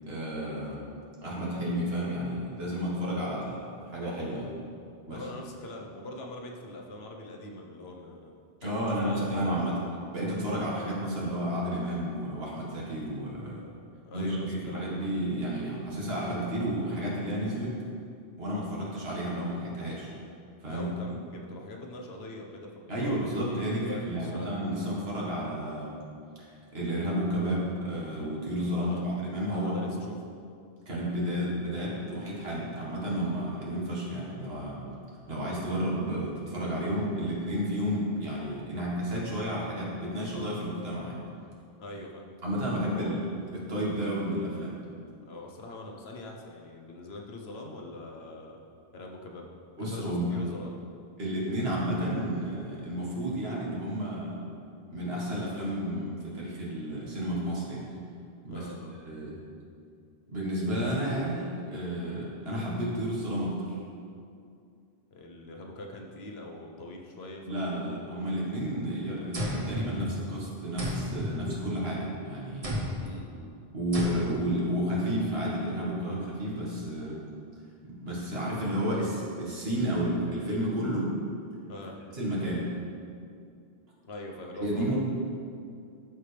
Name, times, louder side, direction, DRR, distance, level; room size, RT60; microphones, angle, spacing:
voice 1, 0.0-0.8 1.2-4.5 5.1-5.2 8.6-9.8 10.1-13.6 14.1-17.8 18.4-20.1 20.6-20.9 22.9-26.0 26.4-26.5 26.7-29.7 30.9-34.8 35.3-41.2 42.4-43.2 43.5-44.8 49.8-50.3 51.2-54.4 54.9-57.9 58.4-58.7 59.0-59.4 60.3-63.6 67.5-72.8 73.7-77.2 77.8-81.2 82.1-82.7 84.6-85.0, equal, 75° right, -5 dB, 1.9 m, -31 dB
voice 2, 5.1-8.3 8.6-9.6 13.4-14.8 20.6-24.5 28.8-29.0 29.5-30.3 41.8-42.2 42.8-43.1 45.3-48.6 48.9-49.5 49.8-50.8 58.5-58.9 65.1-67.9 73.0-73.6 81.7-82.0 84.0-85.0, left 2 dB, 80° left, 0 dB, 1.1 m, -43 dB
sound 1, 69.3-70.4 70.8-72.1 72.6-73.2 73.9-74.6, equal, 35° right, 1.1 m, -34 dB
12.5 x 4.8 x 3.3 m, 2.4 s
omnidirectional pair, 1.0 m